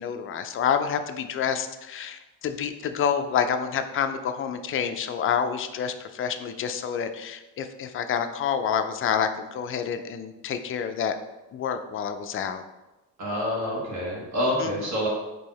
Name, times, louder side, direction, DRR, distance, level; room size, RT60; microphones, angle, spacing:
voice 1, 0.0-11.2 11.5-12.6 14.6-14.7, left 7 dB, 40° left, 8 dB, 0.4 m, -28 dB
voice 2, 13.2-15.1, left 1 dB, 60° right, -4 dB, 1.4 m, -27 dB
4.6 x 2.7 x 4.1 m, 1.0 s
cardioid pair, 110°, 33 cm